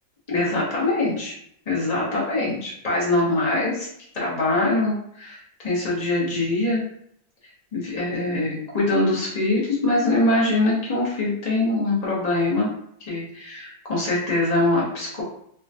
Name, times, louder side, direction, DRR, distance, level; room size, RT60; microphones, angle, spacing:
voice 1, 0.3-1.3 1.7-3.9 4.1-6.8 7.7-12.7 13.0-15.2, left 2 dB, 35° left, -6 dB, 0.6 m, -23 dB
3.6 x 2.2 x 2.6 m, 0.69 s
omnidirectional pair, 2.1 m